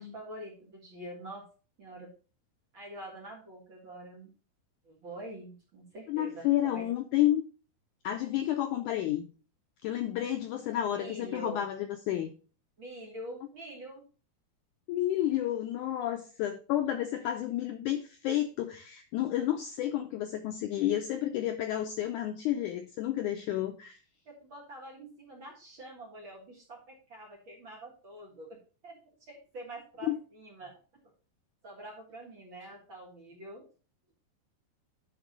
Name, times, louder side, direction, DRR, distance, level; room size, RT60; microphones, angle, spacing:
voice 1, 0.0-1.5 1.8-2.1 2.7-4.3 4.8-6.9 10.8-11.6 12.8-14.0 24.3-29.0 29.3-30.8 31.6-33.7, right 1 dB, 45° right, 0 dB, 1.8 m, -45 dB
voice 2, 6.1-7.4 8.0-9.3 9.8-12.3 14.9-24.0 30.1-30.2, left 12 dB, 90° left, 6 dB, 1.7 m, -31 dB
11.0 x 3.7 x 5.2 m, 0.37 s
omnidirectional pair, 4.3 m